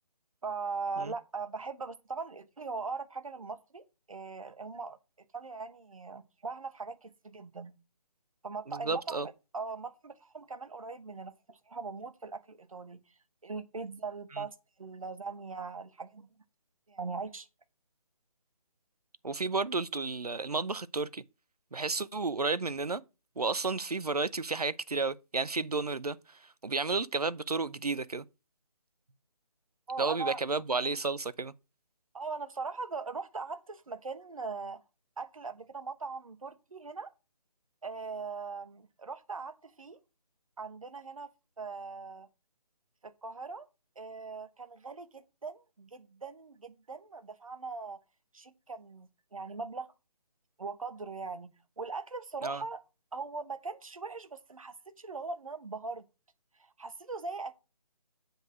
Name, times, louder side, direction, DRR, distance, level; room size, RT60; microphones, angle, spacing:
voice 1, 0.4-5.0 5.3-7.7 8.4-13.0 13.4-16.3 16.9-17.5 29.9-30.4 32.1-34.8 35.2-37.1 37.8-40.0 40.6-41.3 41.6-42.3 43.0-43.7 44.0-48.0 48.3-49.9 50.6-52.8 53.1-56.0 56.6-57.5, right 4 dB, 60° right, 1.1 m, -40 dB
voice 2, 8.7-9.3 14.4-14.5 19.2-21.2 21.7-23.0 23.4-26.2 26.6-28.2 30.0-31.5 52.4-52.6, right 3 dB, 80° right, 0.6 m, -32 dB
7.7 x 4.9 x 5.8 m
figure-of-eight pair, 150°, 20 cm